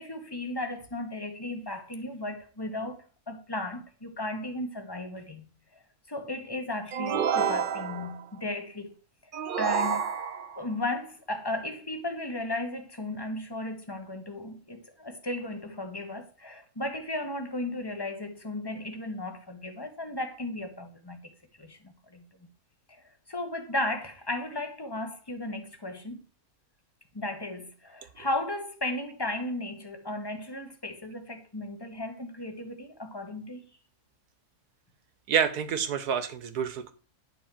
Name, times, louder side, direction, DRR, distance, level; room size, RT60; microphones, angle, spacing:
voice 1, 0.0-5.8 6.1-8.9 9.6-10.1 10.6-21.3 21.6-22.2 22.9-26.2 27.1-33.6, left 1 dB, 15° left, 1.1 m, -35 dB
sound 1, 6.9-8.2 9.3-10.6, right 7 dB, 55° right, 0.6 m, -29 dB
voice 2, 35.3-36.9, right 7 dB, 85° right, 1.6 m, -28 dB
11.0 x 4.4 x 7.4 m
omnidirectional pair, 1.6 m